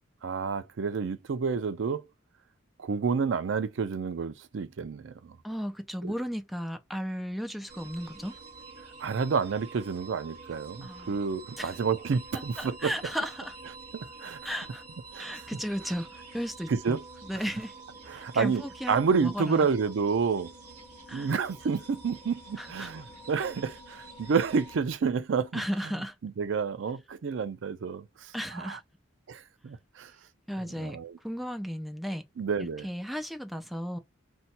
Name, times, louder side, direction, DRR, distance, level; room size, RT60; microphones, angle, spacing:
voice 1, 0.2-2.0 2.8-5.4 6.0-6.1 9.0-12.9 13.9-14.5 15.1-15.5 16.7-17.0 18.1-18.6 18.9-20.5 21.1-25.6 26.2-28.8 29.3-30.1 30.8-31.2 32.4-32.9, right 5 dB, 65° right, 0.4 m, -29 dB
voice 2, 5.4-8.3 10.8-11.2 11.6-11.7 12.3-13.5 14.4-14.8 15.1-17.7 18.1-19.7 21.1-21.3 22.6-22.9 25.5-26.2 28.3-28.8 30.5-31.0 31.2-32.2 32.8-34.0, equal, ahead, 0.3 m, -35 dB
sound 1, 7.7-24.8, right 3 dB, 40° right, 1.4 m, -47 dB
2.7 x 2.2 x 4.0 m
head